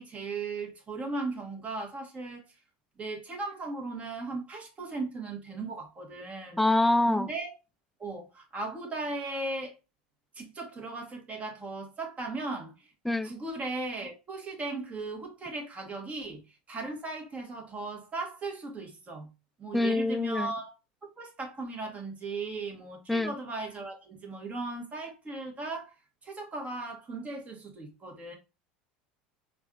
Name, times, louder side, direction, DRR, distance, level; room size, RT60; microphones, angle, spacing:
voice 1, 0.0-2.4 3.0-6.6 7.1-7.5 8.0-9.7 10.3-12.9 13.2-19.3 19.6-20.7 21.2-25.9 26.2-28.4, right 3 dB, 30° right, 1.4 m, -37 dB
voice 2, 6.6-7.3 13.0-13.3 19.7-20.5 23.1-23.3, left 2 dB, ahead, 0.3 m, -25 dB
4.1 x 2.5 x 2.5 m
hypercardioid pair, 95°, 5 cm